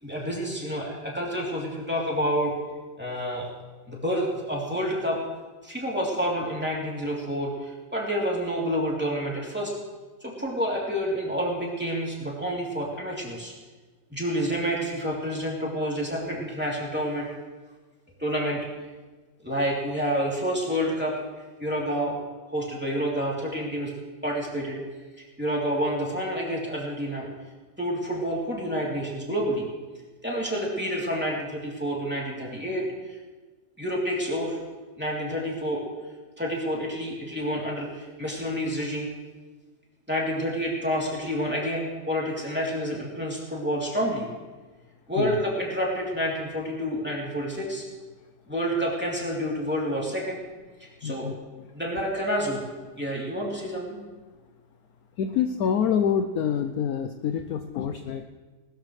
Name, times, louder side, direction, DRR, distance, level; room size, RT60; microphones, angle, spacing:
voice 1, 0.0-2.5 3.0-3.5 3.9-5.2 5.6-9.7 10.2-13.5 14.1-17.3 18.2-18.6 19.4-21.1 21.6-22.1 22.5-23.9 24.2-24.8 25.2-27.3 27.8-29.7 30.2-33.2 33.8-34.6 35.0-35.8 36.4-39.1 40.1-44.3 45.1-47.8 48.5-50.4 51.0-51.3 51.7-52.6 53.0-54.0, equal, 5° right, -4 dB, 3.1 m, -28 dB
voice 2, 51.0-51.6 55.2-58.3, left 8 dB, 70° left, 7 dB, 1.0 m, -27 dB
20.0 x 13.5 x 3.3 m, 1.3 s
omnidirectional pair, 1.9 m